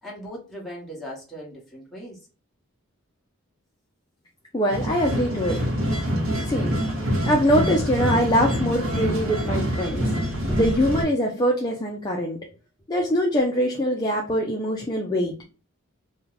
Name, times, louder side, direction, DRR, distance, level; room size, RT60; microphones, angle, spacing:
voice 1, 0.0-2.2, equal, ahead, 1.2 m, -38 dB
voice 2, 4.5-5.6 6.4-6.7 7.2-10.1 10.5-12.5 12.9-15.4, equal, 20° left, 0.4 m, -23 dB
sound 1, 4.7-11.0, equal, 60° right, 0.9 m, -25 dB
2.7 x 2.2 x 3.9 m
head